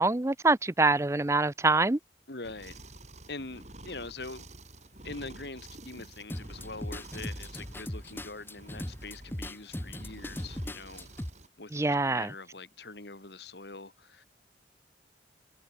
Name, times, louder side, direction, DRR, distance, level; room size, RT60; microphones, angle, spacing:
voice 1, 0.0-2.0 11.7-12.3, right 3 dB, 15° right, 0.5 m, -25 dB
voice 2, 2.3-2.8 3.3-4.5 5.0-11.1 11.6-14.2, left 3 dB, 65° left, 2.6 m, -43 dB
sound 1, 2.4-11.5, right 2 dB, 40° right, 5.7 m, -50 dB
sound 2, 6.3-11.3, left 1 dB, 10° left, 1.3 m, -39 dB
head